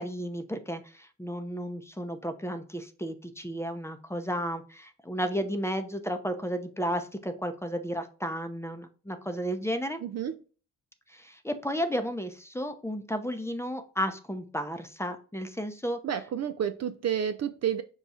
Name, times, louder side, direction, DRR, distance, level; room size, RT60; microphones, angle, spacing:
voice 1, 0.0-10.0 11.1-16.0, equal, 5° left, 7 dB, 0.7 m, -33 dB
voice 2, 10.0-10.3 16.0-17.8, right 9 dB, 45° right, 10 dB, 0.5 m, -30 dB
5.4 x 2.3 x 4.2 m, 0.37 s
supercardioid pair, 50°, 36 cm